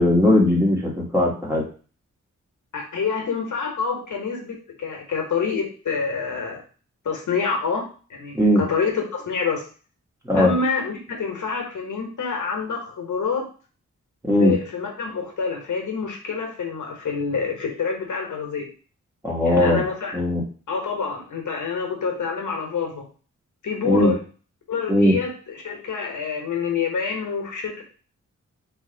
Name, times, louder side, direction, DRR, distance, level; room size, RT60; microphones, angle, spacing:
voice 1, 0.0-1.6 8.3-8.6 10.2-10.5 14.2-14.5 19.2-19.8 20.1-20.4 23.8-24.1 24.9-25.2, left 1 dB, 10° right, -3 dB, 1.2 m, -18 dB
voice 2, 2.7-6.6 7.0-9.6 10.3-13.5 14.4-18.7 19.4-20.1 20.7-23.1 23.6-24.2 24.7-27.8, left 5 dB, 80° left, 1 dB, 1.1 m, -27 dB
3.1 x 2.6 x 3.8 m, 0.38 s
wide cardioid pair, 110°, 30 cm